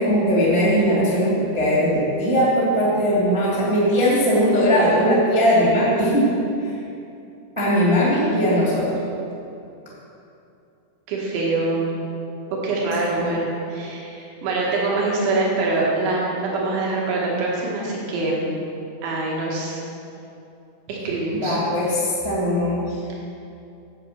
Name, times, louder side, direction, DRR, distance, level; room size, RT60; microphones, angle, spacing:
voice 1, 0.0-6.3 6.6-6.7 7.5-9.0 13.1-13.4 21.3-23.0, equal, 50° right, -8 dB, 0.3 m, -19 dB
voice 2, 11.1-11.9 12.6-18.5 19.0-19.8 20.9-21.6, right 2 dB, 75° right, -3 dB, 4.0 m, -24 dB
10.5 x 7.9 x 5.9 m, 2.7 s
omnidirectional pair, 5.4 m